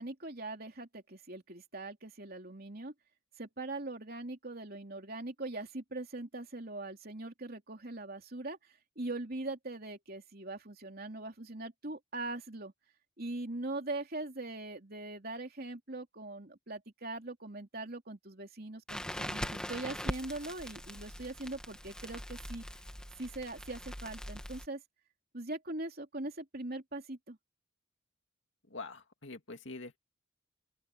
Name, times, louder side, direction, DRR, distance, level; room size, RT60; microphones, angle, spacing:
voice 1, 0.0-2.9 3.4-8.6 8.9-12.7 13.2-22.6 23.2-24.8 25.3-27.4, right 2 dB, 45° right, 3.4 m, -41 dB
Crackle, 18.9-24.7, equal, 5° left, 1.7 m, -41 dB
voice 2, 28.7-30.0, left 3 dB, 60° left, 2.4 m, -45 dB
open air
head